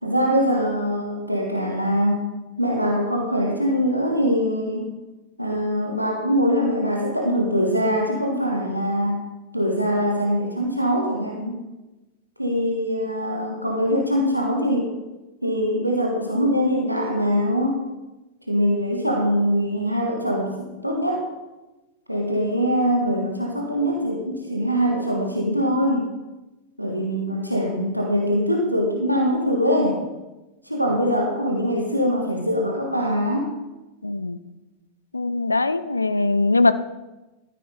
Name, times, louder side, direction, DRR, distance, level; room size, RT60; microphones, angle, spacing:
voice 1, 0.0-2.3 2.6-4.9 5.4-9.2 9.5-11.6 12.4-14.9 15.4-17.8 18.5-21.3 22.1-26.1 26.8-30.0 30.6-33.5, equal, 90° right, 1 dB, 1.4 m, -23 dB
voice 2, 34.0-34.4 35.1-36.7, left 3 dB, 80° left, 14 dB, 0.5 m, -21 dB
13.5 x 9.3 x 3.8 m, 1.1 s
figure-of-eight pair, 90°, 0 cm